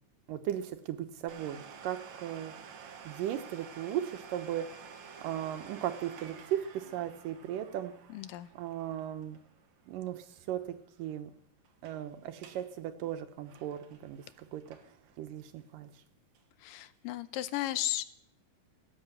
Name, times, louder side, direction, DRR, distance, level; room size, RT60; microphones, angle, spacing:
voice 1, 0.3-2.5 3.0-4.7 5.2-7.9 8.6-9.4 9.9-11.3 11.8-15.9, right 11 dB, 80° right, 9 dB, 2.6 m, -37 dB
Domestic sounds home sounds, 1.3-10.7 11.0-11.1 11.6-12.0 12.3-12.7 13.0-15.1 15.6-15.7 16.3-16.4, right 6 dB, 65° right, 2.5 m, -51 dB
voice 2, 8.1-8.5 16.6-18.0, left 15 dB, 85° left, 13 dB, 2.4 m, -35 dB
17.5 x 8.1 x 8.0 m, 0.72 s
omnidirectional pair, 3.9 m